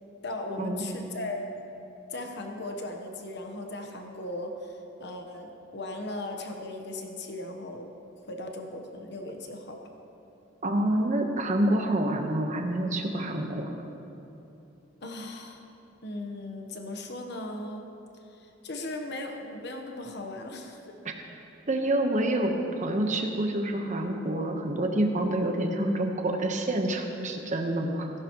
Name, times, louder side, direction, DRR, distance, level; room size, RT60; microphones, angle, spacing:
voice 1, 0.2-1.4 2.1-7.9 8.3-9.8 15.0-15.6 16.0-17.9 18.3-20.9, left 2 dB, 60° left, 3 dB, 1.2 m, -37 dB
voice 2, 10.6-13.7 21.7-28.1, right 1 dB, 40° right, 3 dB, 1.2 m, -27 dB
16.0 x 15.5 x 3.1 m, 2.9 s
head